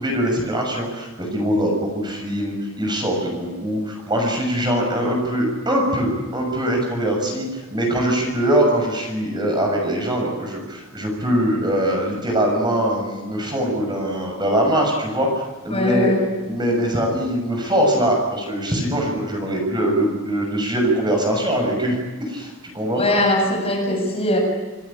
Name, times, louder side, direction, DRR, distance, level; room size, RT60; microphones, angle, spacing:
voice 1, 0.0-16.1 16.4-23.0, right 1 dB, 20° right, 1 dB, 6.7 m, -22 dB
voice 2, 15.7-16.3 23.0-24.4, left 1 dB, 30° left, 1 dB, 7.2 m, -20 dB
27.5 x 18.5 x 8.7 m, 1.3 s
head